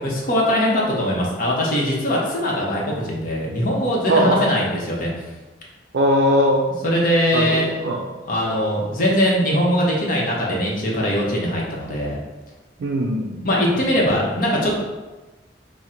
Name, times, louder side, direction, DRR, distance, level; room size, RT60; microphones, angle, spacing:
voice 1, 0.0-5.1 6.8-7.7 8.2-12.2 13.4-14.7, equal, 50° left, -3 dB, 0.9 m, -21 dB
voice 2, 4.1-4.5 5.9-6.7 7.3-8.0 12.8-13.5, equal, 70° right, 0 dB, 0.4 m, -19 dB
3.7 x 2.2 x 4.3 m, 1.2 s
head